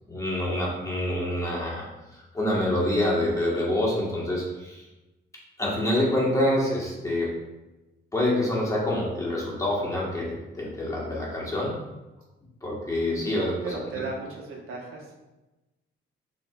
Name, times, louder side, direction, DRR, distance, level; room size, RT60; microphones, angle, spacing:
voice 1, 0.1-1.9 2.1-4.8 5.6-7.4 8.1-11.7 12.6-13.5, left 1 dB, 15° left, -5 dB, 1.4 m, -26 dB
voice 2, 13.1-15.1, right 3 dB, 85° right, -2 dB, 1.2 m, -36 dB
5.9 x 3.2 x 2.4 m, 1.1 s
cardioid pair, 105°, 21 cm